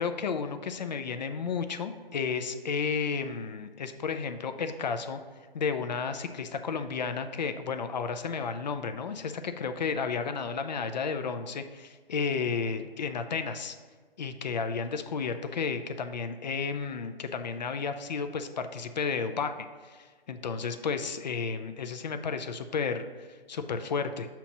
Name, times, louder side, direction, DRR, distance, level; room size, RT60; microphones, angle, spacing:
voice 1, 0.0-5.2 5.5-13.8 14.2-19.5 19.8-24.3, left 5 dB, 45° left, 8 dB, 0.5 m, -32 dB
6.8 x 3.0 x 5.9 m, 1.5 s
figure-of-eight pair, 145°, 30 cm